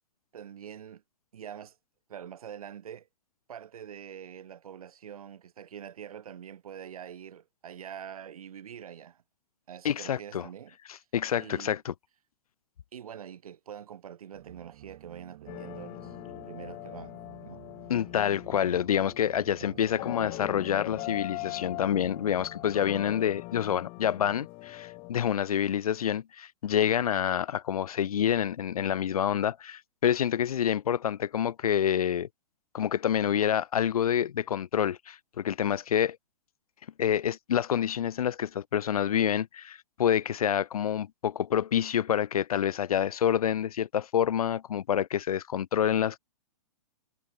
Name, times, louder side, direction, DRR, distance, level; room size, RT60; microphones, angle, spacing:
voice 1, 0.3-1.0 1.3-1.8 2.1-3.1 3.5-9.2 9.7-10.7 11.4-11.8 12.9-17.2 17.4-17.6 18.5-18.9 19.6-19.8, right 9 dB, 75° right, 5.0 m, -45 dB
voice 2, 9.8-10.5 10.9-11.9 17.9-32.3 32.7-36.2 37.0-46.2, left 9 dB, 80° left, 1.3 m, -27 dB
sound 1, 14.3-22.9, right 16 dB, 45° right, 2.7 m, -52 dB
sound 2, 15.5-25.1, left 25 dB, 30° left, 4.4 m, -41 dB
hypercardioid pair, 160°, 19 cm